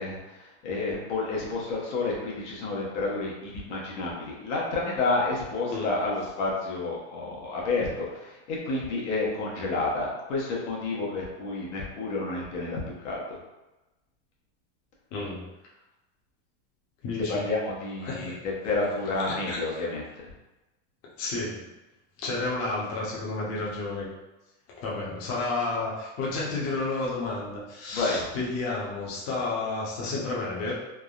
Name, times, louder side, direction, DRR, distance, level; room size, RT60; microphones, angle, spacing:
voice 1, 0.0-13.4 17.3-18.4 18.6-20.0 27.9-28.3, left 3 dB, 75° left, -3 dB, 1.0 m, -30 dB
voice 2, 15.1-15.4 17.0-17.5 18.0-18.4 19.2-19.6 21.2-21.7 22.2-24.1 24.8-30.7, left 3 dB, 45° left, -5 dB, 0.8 m, -31 dB
3.5 x 2.1 x 2.4 m, 1.0 s
supercardioid pair, 145°, 36 cm